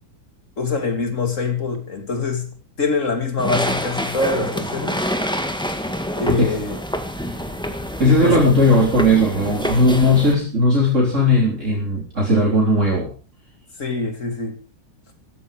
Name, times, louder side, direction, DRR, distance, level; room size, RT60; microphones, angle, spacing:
voice 1, 0.6-5.0 6.2-6.8 8.0-8.4 13.8-14.6, left 4 dB, 40° left, 3.3 m, -24 dB
sound 1, 3.4-10.3, equal, ahead, 1.7 m, -26 dB
voice 2, 8.0-13.1, left 1 dB, 35° right, 4.0 m, -17 dB
15.5 x 15.0 x 5.1 m
omnidirectional pair, 2.1 m